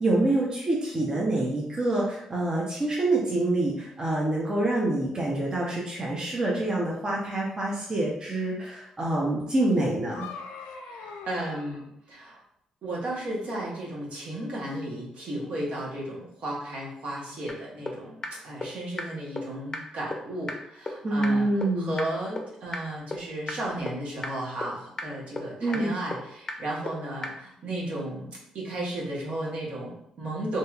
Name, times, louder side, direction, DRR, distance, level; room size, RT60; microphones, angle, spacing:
voice 1, 0.0-10.3 21.0-22.0 25.6-25.9, right 2 dB, 35° right, -4 dB, 0.7 m, -26 dB
sound 1, 9.7-11.9, left 5 dB, 85° left, 0.4 m, -42 dB
voice 2, 10.8-12.4 12.8-28.3 28.5-30.6, right 1 dB, 65° right, -4 dB, 1.1 m, -34 dB
sound 2, 17.5-17.6 17.9-18.0 18.2-18.3 18.6-18.7 19.0-19.1 19.4-19.5 19.7-19.8 20.1-20.2 20.5-20.6 20.9-21.0 21.2-21.3 21.6-21.7 22.0-22.1 22.4-22.5 22.7-22.8 23.1-23.2 23.5-23.6 23.9-24.0 24.2-24.3 24.6-24.7 25.0-25.1 25.4-25.5 25.7-25.8 26.1-26.2 26.5-26.6 26.9-27.0 27.2-27.3, left 3 dB, 30° left, 0.6 m, -32 dB
2.8 x 2.7 x 2.4 m, 0.76 s
supercardioid pair, 55°, 2 cm